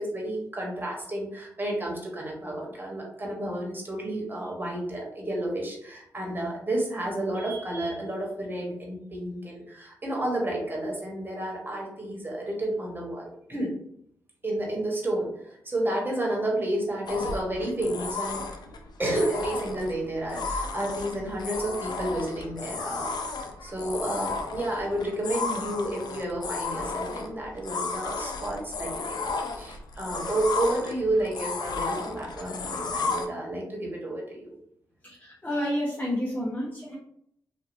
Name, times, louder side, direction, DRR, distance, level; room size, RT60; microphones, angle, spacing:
voice 1, 0.0-13.7 14.4-18.6 19.0-34.5, right 1 dB, 25° right, -1 dB, 1.2 m, -31 dB
sound 1, 17.1-33.3, left 4 dB, 60° left, 0.4 m, -33 dB
voice 2, 35.0-37.0, equal, 20° left, -6 dB, 1.0 m, -30 dB
2.9 x 2.4 x 2.6 m, 0.71 s
hypercardioid pair, 40°, 8 cm